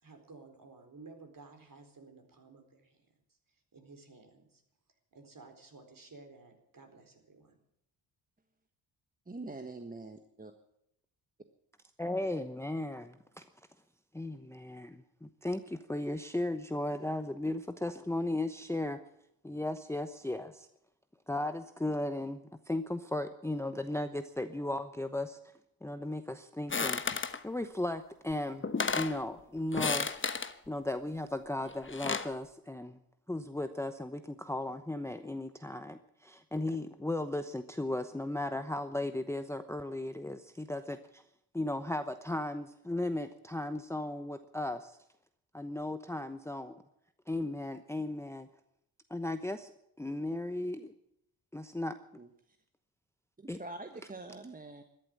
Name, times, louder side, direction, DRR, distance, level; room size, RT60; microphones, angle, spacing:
voice 1, 0.0-3.0 3.7-4.6 5.1-7.5, right 3 dB, 40° right, 5 dB, 4.3 m, -54 dB
voice 2, 9.3-10.5 52.2-52.6 53.4-54.8, right 2 dB, 15° right, 6 dB, 1.4 m, -45 dB
voice 3, 12.0-13.5 14.1-19.0 19.4-20.7 21.3-25.4 25.8-28.7 28.9-30.1 30.4-33.0 33.3-41.3 41.5-45.0 45.5-46.9 47.3-48.5 49.1-49.7 50.0-50.9 51.5-52.0 53.5-53.6, left 1 dB, 5° left, 10 dB, 0.9 m, -36 dB
sound 1, 26.7-27.4 28.3-28.4 28.6-29.2 29.7-30.5 31.7-32.3, left 4 dB, 25° left, 1.2 m, -32 dB
13.0 x 11.0 x 9.6 m, 0.76 s
hypercardioid pair, 50°, 50 cm